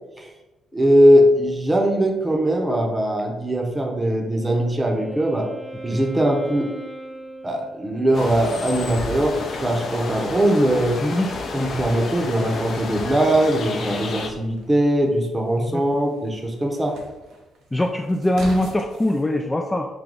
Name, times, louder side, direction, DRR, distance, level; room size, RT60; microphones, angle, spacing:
voice 1, 0.7-5.5 5.8-6.7 7.4-11.0 11.5-16.9, right 1 dB, 20° right, 2 dB, 0.8 m, -20 dB
Wind instrument woodwind instrument, 4.0-8.4, right 1 dB, 55° right, 1.2 m, -39 dB
sound 1, 8.1-14.3, left 3 dB, 55° left, 0.7 m, -31 dB
sound 2, 14.3-19.2, right 2 dB, 75° right, 0.8 m, -43 dB
voice 2, 17.7-19.9, left 1 dB, 15° left, 2 dB, 0.3 m, -22 dB
4.9 x 2.3 x 3.8 m, 1.0 s
cardioid pair, 90°, 0 cm